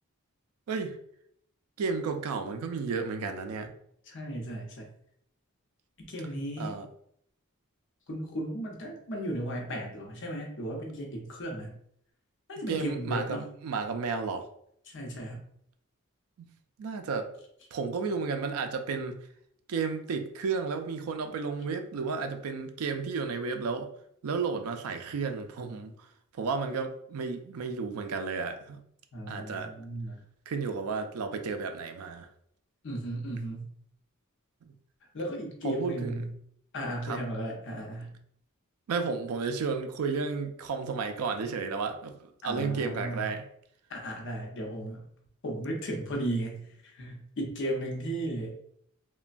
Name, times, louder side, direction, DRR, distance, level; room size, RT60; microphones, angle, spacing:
voice 1, 0.7-1.0 1.8-3.7 6.6-6.9 12.7-14.4 16.8-17.3 17.7-19.2 19.7-23.9 24.2-25.9 26.4-28.8 29.3-29.7 30.5-32.3 35.6-36.3 37.0-37.2 38.9-42.1 42.4-43.5, right 5 dB, 80° right, 7 dB, 0.4 m, -32 dB
voice 2, 4.1-4.9 6.1-6.7 8.1-11.8 12.5-13.4 14.9-15.4 29.1-30.2 32.8-33.7 35.1-36.3 36.7-38.1 42.4-43.3 43.9-45.0 45.4-46.7 46.9-48.5, right 1 dB, 55° left, 0 dB, 0.7 m, -35 dB
3.1 x 2.2 x 2.5 m, 0.69 s
head